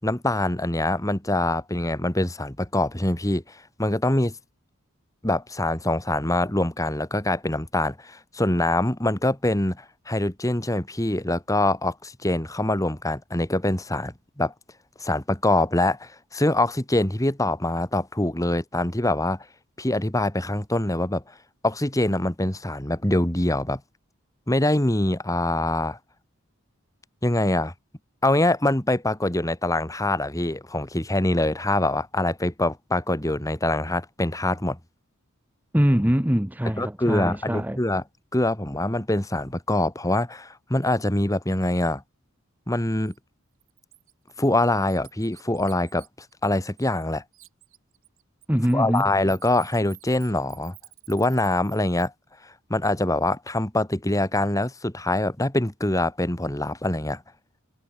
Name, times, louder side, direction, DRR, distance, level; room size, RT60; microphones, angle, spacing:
voice 1, 0.0-4.3 5.2-14.5 15.0-19.5 19.8-21.2 21.6-23.8 24.5-26.0 27.2-27.7 28.2-34.8 36.8-38.0 38.3-42.0 42.7-43.1 44.4-46.0 46.4-47.2 48.7-50.7 51.1-52.1 52.7-57.2, left 1 dB, 15° left, 2.0 m, -24 dB
voice 2, 35.7-37.8 48.5-49.1, equal, 10° right, 1.2 m, -23 dB
Bird, 43.0-43.2 43.6-47.1 47.3-52.1, right 17 dB, 70° right, 7.3 m, -51 dB
head